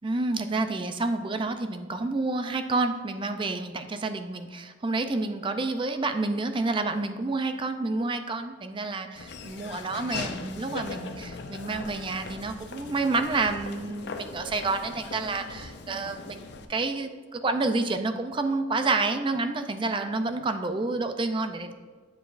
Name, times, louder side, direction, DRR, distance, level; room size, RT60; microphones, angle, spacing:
voice 1, 0.0-21.7, right 3 dB, 25° right, 8 dB, 0.4 m, -29 dB
Laughter / Walk footsteps, 9.2-16.7, left 4 dB, 65° left, 0.6 m, -39 dB
8.0 x 6.9 x 2.5 m, 1.5 s
head